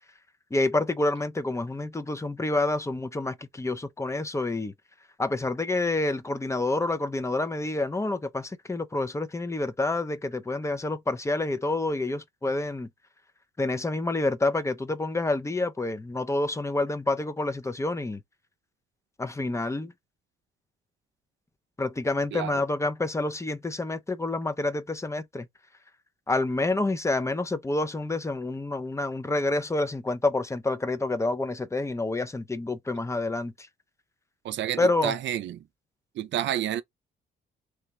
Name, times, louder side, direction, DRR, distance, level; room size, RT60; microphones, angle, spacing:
voice 1, 0.5-4.7 5.2-12.9 13.6-18.2 19.2-19.9 21.8-25.5 26.3-33.5 34.8-35.2, left 2 dB, 15° left, 0.5 m, -28 dB
voice 2, 22.3-22.6 34.4-35.6 36.1-36.8, right 11 dB, 65° right, 0.5 m, -30 dB
3.2 x 2.9 x 3.1 m
cardioid pair, 90°, 20 cm